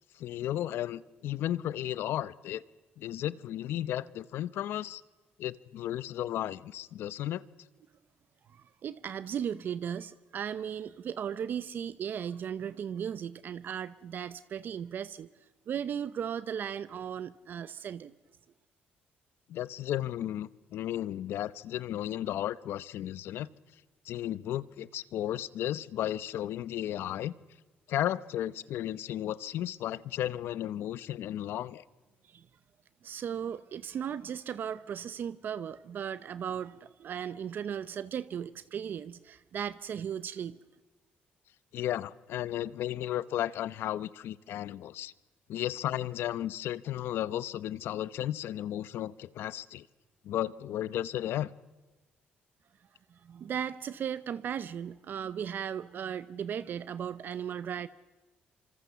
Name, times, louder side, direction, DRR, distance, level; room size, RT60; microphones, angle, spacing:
voice 1, 0.2-2.6 3.0-5.0 5.4-7.4 19.5-23.5 24.1-27.3 27.9-31.8 41.7-45.1 45.5-49.9 50.2-51.5, left 12 dB, 75° left, 18 dB, 0.8 m, -34 dB
voice 2, 8.5-15.3 15.7-18.1 32.3-32.4 33.0-40.6 53.2-57.9, right 8 dB, 55° right, 15 dB, 0.7 m, -36 dB
26.5 x 25.0 x 6.9 m, 1.2 s
cardioid pair, 110°, 4 cm